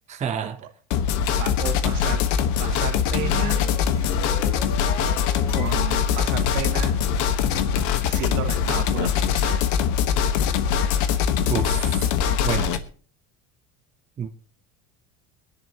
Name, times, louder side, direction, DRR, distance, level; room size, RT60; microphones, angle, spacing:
voice 1, 0.1-0.6 11.5-11.9 12.4-12.8 14.2-14.3, right 7 dB, 20° right, 0.8 m, -28 dB
sound 1, 0.9-12.8, left 8 dB, 65° left, 1.3 m, -22 dB
voice 2, 1.4-3.6 5.5-7.0 8.0-9.7, right 10 dB, 75° right, 2.3 m, -33 dB
sound 2, 3.1-7.2, left 5 dB, 45° left, 3.0 m, -36 dB
23.0 x 10.5 x 2.9 m
cardioid pair, 150°, 31 cm